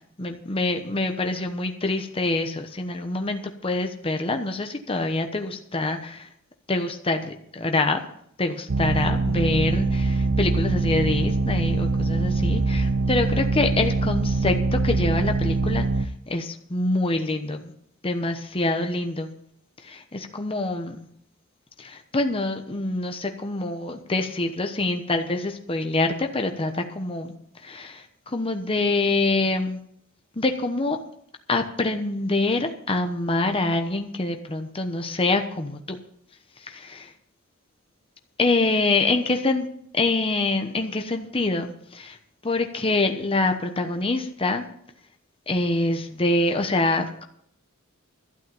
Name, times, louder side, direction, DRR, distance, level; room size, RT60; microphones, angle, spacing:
voice 1, 0.2-6.3 6.7-8.0 8.4-17.7 18.0-19.3 19.8-21.1 21.8-27.3 27.6-29.8 30.4-31.0 31.5-36.0 36.6-37.1 38.4-39.7 39.9-42.2 42.4-44.6 45.5-47.2, left 2 dB, 25° left, 6 dB, 1.0 m, -25 dB
sound 1, 8.7-16.1, right 3 dB, 55° right, 0.6 m, -23 dB
12.5 x 8.5 x 7.1 m, 0.68 s
head